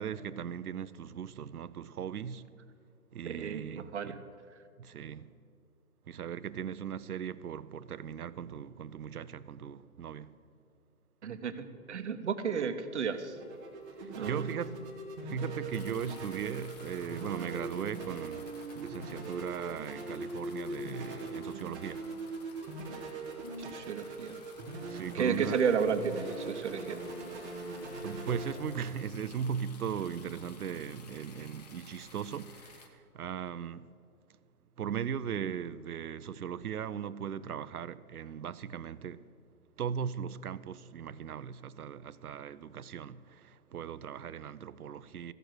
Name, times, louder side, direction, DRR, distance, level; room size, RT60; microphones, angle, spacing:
voice 1, 0.0-2.5 3.1-4.2 4.8-5.3 6.1-10.3 14.0-14.8 15.2-18.4 18.7-22.1 24.8-25.6 28.0-33.9 34.8-39.3 39.8-45.3, right 8 dB, 80° right, 0.6 m, -38 dB
voice 2, 3.3-4.2 11.2-13.4 14.1-14.5 23.6-24.4 25.1-27.0, right 6 dB, 50° right, 1.0 m, -32 dB
sound 1, 13.0-31.3, right 2 dB, 10° right, 0.7 m, -41 dB
sound 2, 15.7-32.9, left 4 dB, 30° left, 0.9 m, -55 dB
15.0 x 6.7 x 7.8 m
hypercardioid pair, 150°, 44 cm